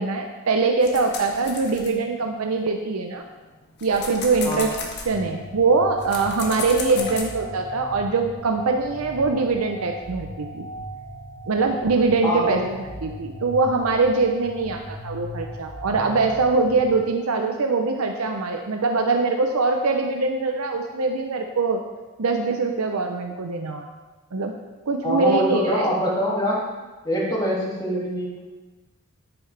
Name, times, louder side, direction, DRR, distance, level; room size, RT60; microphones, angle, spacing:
voice 1, 0.0-3.2 3.8-4.7 5.0-10.7 11.5-12.8 13.0-21.8 22.2-23.8 24.3-24.5 24.9-25.8, right 3 dB, 90° right, 4 dB, 0.7 m, -23 dB
sound 1, 0.8-2.6 3.2-7.3, left 4 dB, 55° left, 1.4 m, -35 dB
sound 2, 5.1-17.0, right 1 dB, 75° right, 2.1 m, -38 dB
voice 2, 12.2-12.6 25.0-26.7 27.0-28.4, equal, 20° left, -4 dB, 2.3 m, -24 dB
10.0 x 8.8 x 3.3 m, 1.2 s
head